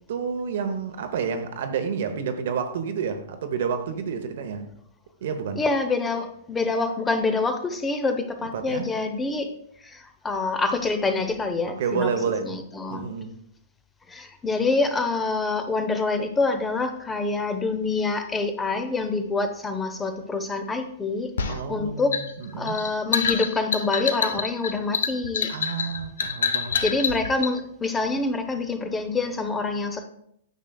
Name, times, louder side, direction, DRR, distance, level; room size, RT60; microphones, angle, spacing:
voice 1, 0.0-4.7 5.2-5.6 8.5-8.9 11.8-12.5 12.9-13.4 21.5-22.8 25.5-27.0, right 6 dB, 65° right, 0.9 m, -29 dB
voice 2, 5.5-9.5 9.8-12.1 12.4-13.1 14.1-21.3 21.7-22.2 22.6-25.5 26.8-30.0, left 3 dB, 15° left, 0.7 m, -26 dB
sound 1, 21.4-27.5, left 6 dB, 75° left, 0.7 m, -27 dB
9.1 x 6.2 x 2.3 m
hypercardioid pair, 120°, 0 cm